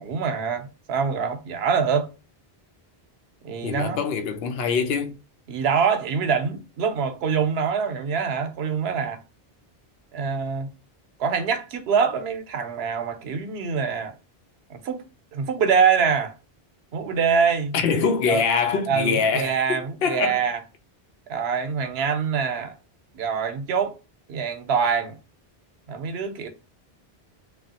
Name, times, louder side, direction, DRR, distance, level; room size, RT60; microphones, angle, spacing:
voice 1, 0.0-2.1 3.4-4.0 5.5-9.2 10.1-10.7 11.2-14.1 14.7-15.0 15.3-16.3 16.9-17.7 18.3-18.4 18.9-20.6 21.3-22.7 23.1-24.0 24.3-25.2 25.9-26.5, right 6 dB, 80° right, 0.9 m, -24 dB
voice 2, 3.6-5.2 17.7-20.4, left 5 dB, 75° left, 0.8 m, -24 dB
3.1 x 2.3 x 2.8 m
omnidirectional pair, 1.1 m